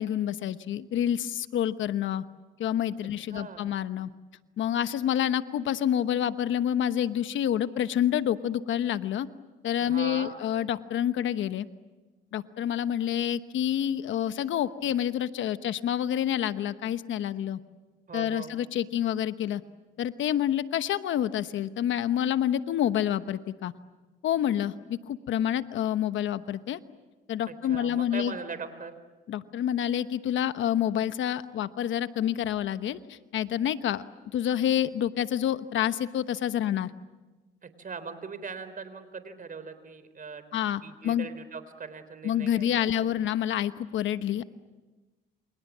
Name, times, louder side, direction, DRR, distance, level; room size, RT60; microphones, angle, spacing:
voice 1, 0.0-2.2 2.6-4.1 4.6-9.3 9.6-11.7 12.3-17.6 18.1-19.6 20.0-23.7 24.2-26.8 27.3-28.4 29.3-34.0 34.3-36.9 40.5-41.3 42.2-44.4, left 10 dB, 75° left, 12 dB, 1.1 m, -28 dB
voice 2, 3.3-3.7 9.8-10.3 18.1-18.6 27.5-29.0 37.6-40.4 40.8-43.1, right 5 dB, 45° right, 12 dB, 3.9 m, -40 dB
29.0 x 27.0 x 7.4 m, 1.2 s
cardioid pair, 90°, 20 cm